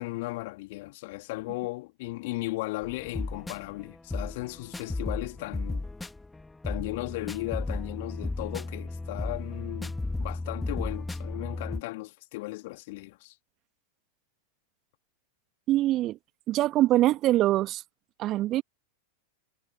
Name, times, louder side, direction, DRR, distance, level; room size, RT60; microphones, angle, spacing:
voice 1, 0.0-5.9 6.6-13.3, left 22 dB, 50° left, 2.7 m, -36 dB
sound 1, 2.8-11.8, left 2 dB, 5° left, 1.9 m, -34 dB
voice 2, 15.7-16.2 16.5-17.8 18.2-18.6, right 15 dB, 35° right, 1.7 m, -23 dB
figure-of-eight pair, 90°, 0 cm